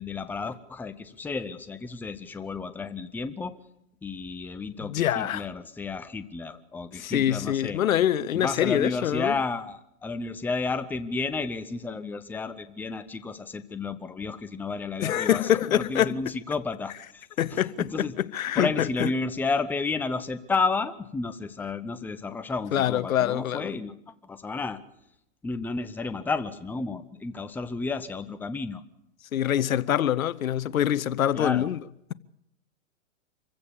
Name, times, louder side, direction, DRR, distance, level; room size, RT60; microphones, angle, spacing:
voice 1, 0.0-3.6 4.0-7.8 8.3-17.2 17.5-18.1 18.5-24.8 25.4-28.8 31.3-31.7, left 4 dB, 5° left, 0.7 m, -32 dB
voice 2, 4.8-5.5 7.0-9.3 15.0-16.2 17.4-19.1 22.7-23.7 29.3-31.8, left 11 dB, 80° left, 0.9 m, -25 dB
25.5 x 15.5 x 7.0 m
hypercardioid pair, 125°, 41 cm